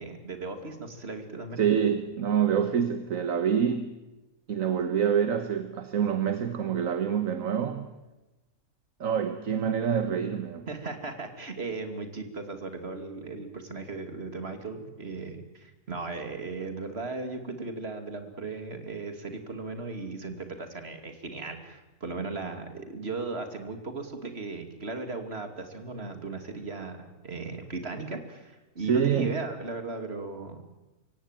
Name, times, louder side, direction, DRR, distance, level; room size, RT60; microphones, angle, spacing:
voice 1, 0.0-1.6 10.7-30.6, right 3 dB, 45° right, 7 dB, 2.8 m, -37 dB
voice 2, 1.6-3.9 4.5-7.9 9.0-10.7 28.9-29.4, right 8 dB, 65° right, 8 dB, 1.6 m, -26 dB
25.5 x 16.5 x 9.1 m, 1.0 s
omnidirectional pair, 1.5 m